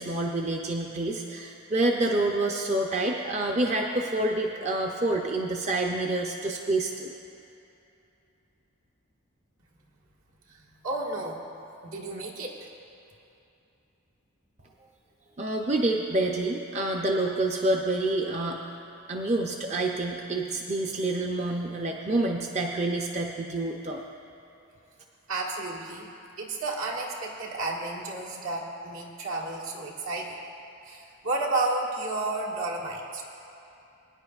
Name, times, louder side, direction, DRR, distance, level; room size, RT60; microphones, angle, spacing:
voice 1, 0.0-7.1 15.4-18.6 19.1-24.0, right 2 dB, 30° right, 1 dB, 0.5 m, -27 dB
voice 2, 10.5-11.6 11.8-12.7 25.3-26.1 26.4-30.4 30.8-33.2, right 2 dB, 80° right, -3 dB, 1.6 m, -32 dB
22.5 x 9.9 x 2.4 m, 2.8 s
head